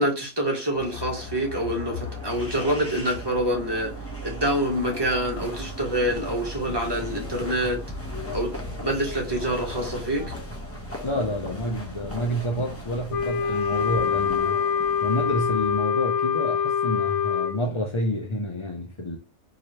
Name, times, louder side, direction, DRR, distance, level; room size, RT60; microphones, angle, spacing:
voice 1, 0.0-3.9 4.2-7.8 8.3-8.5 8.8-10.3, equal, 20° right, 1.2 m, -26 dB
sound 1, 0.7-15.9, left 1 dB, 10° left, 0.9 m, -37 dB
voice 2, 11.0-14.6 15.0-19.2, equal, 35° left, 0.4 m, -29 dB
Wind instrument woodwind instrument, 13.1-17.6, left 7 dB, 70° left, 1.2 m, -24 dB
4.8 x 3.1 x 2.9 m
omnidirectional pair, 1.5 m